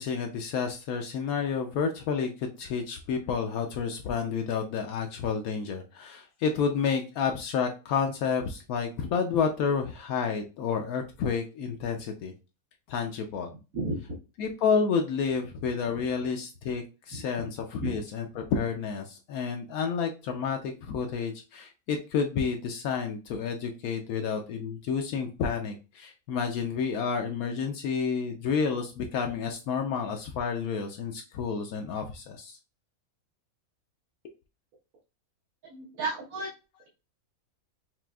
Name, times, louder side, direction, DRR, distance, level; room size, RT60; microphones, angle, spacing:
voice 1, 0.0-12.3 12.9-13.5 14.4-32.6, left 6 dB, 80° left, 3 dB, 1.0 m, -30 dB
voice 2, 35.7-36.5, right 2 dB, 70° right, -5 dB, 1.6 m, -32 dB
5.9 x 2.4 x 2.3 m, 0.31 s
omnidirectional pair, 1.5 m